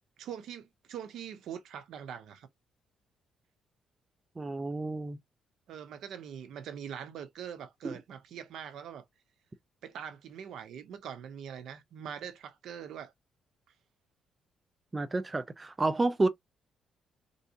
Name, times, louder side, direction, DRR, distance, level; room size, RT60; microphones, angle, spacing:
voice 1, 0.2-2.5 5.7-9.1 9.8-13.1, right 8 dB, 75° right, 0.6 m, -43 dB
voice 2, 4.4-5.2 7.8-8.0 14.9-16.3, right 2 dB, 25° right, 0.3 m, -30 dB
3.4 x 2.6 x 2.6 m
cardioid pair, 90°, 0 cm